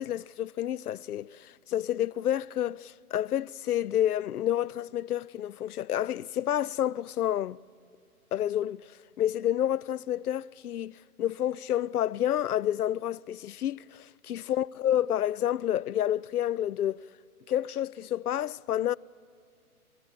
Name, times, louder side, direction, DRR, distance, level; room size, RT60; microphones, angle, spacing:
voice 1, 0.0-7.6 8.3-17.0 17.5-19.0, left 11 dB, 85° left, 0.5 m, -29 dB
28.5 x 14.0 x 9.9 m
hypercardioid pair, 165°, 45 cm